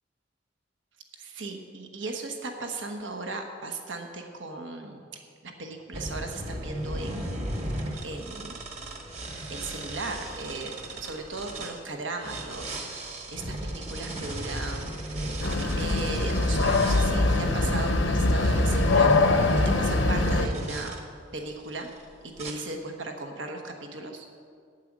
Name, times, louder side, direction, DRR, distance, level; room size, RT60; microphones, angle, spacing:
voice 1, 1.2-5.1 5.4-7.4 8.0-8.6 9.5-14.9 15.2-19.4 19.8-21.0 21.3-21.9 22.4-24.2, right 3 dB, 80° right, 3 dB, 1.2 m, -37 dB
sound 1, 5.9-11.8 12.2-21.0 21.6-22.0 22.4-22.5, right 1 dB, 35° right, 1.5 m, -34 dB
sound 2, 15.4-20.5, left 3 dB, 85° left, 0.8 m, -23 dB
9.3 x 9.1 x 7.4 m, 2.2 s
head